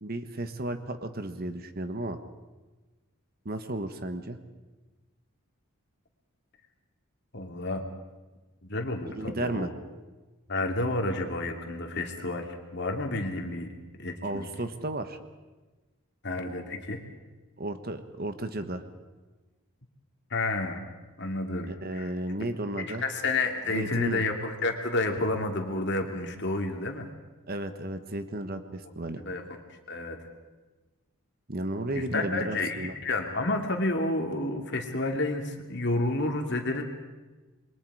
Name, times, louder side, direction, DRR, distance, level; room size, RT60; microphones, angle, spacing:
voice 1, 0.0-2.2 3.4-4.4 9.1-9.7 14.2-15.2 17.6-18.8 21.7-23.0 23.7-24.2 27.5-29.2 31.5-32.9, right 1 dB, 45° right, 9 dB, 1.3 m, -33 dB
voice 2, 7.3-7.8 8.6-9.7 10.5-13.7 14.0-14.5 16.2-17.0 20.3-20.8 21.2-22.1 22.9-27.1 29.2-29.4 29.9-30.2 31.9-36.8, left 2 dB, 50° left, 3 dB, 2.5 m, -30 dB
27.5 x 23.0 x 4.9 m, 1.2 s
head